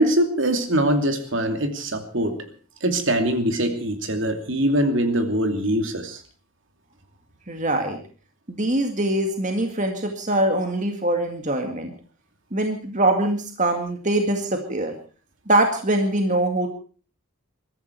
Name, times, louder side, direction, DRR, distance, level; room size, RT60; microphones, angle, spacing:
voice 1, 0.0-2.5 2.8-6.2, right 1 dB, 60° right, 6 dB, 2.7 m, -22 dB
voice 2, 7.5-8.0 8.5-11.9 12.5-14.9 15.5-16.7, right 1 dB, 35° right, 4 dB, 2.1 m, -23 dB
22.5 x 14.0 x 4.6 m, 0.40 s
head